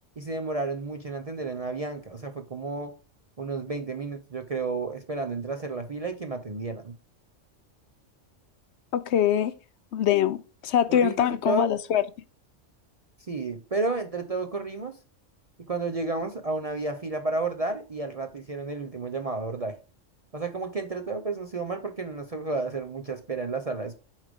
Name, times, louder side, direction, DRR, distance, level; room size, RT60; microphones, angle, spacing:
voice 1, 0.2-2.9 3.4-6.9 10.9-11.7 13.3-15.0 15.6-19.8 20.3-24.0, right 3 dB, 40° right, 0.6 m, -31 dB
voice 2, 8.9-9.5 9.9-12.0, left 9 dB, 65° left, 0.8 m, -23 dB
7.4 x 4.8 x 5.2 m
omnidirectional pair, 1.3 m